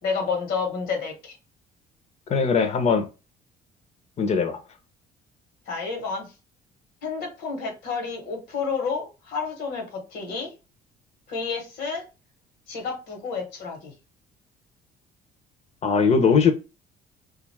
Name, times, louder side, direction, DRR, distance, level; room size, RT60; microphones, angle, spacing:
voice 1, 0.0-1.4 5.7-6.3 7.0-10.5 11.3-12.0 12.7-13.9, left 5 dB, 75° left, 1.1 m, -30 dB
voice 2, 2.3-3.1 4.2-4.6 15.8-16.5, left 5 dB, 40° left, 0.6 m, -20 dB
2.4 x 2.4 x 3.2 m
cardioid pair, 110°, 17 cm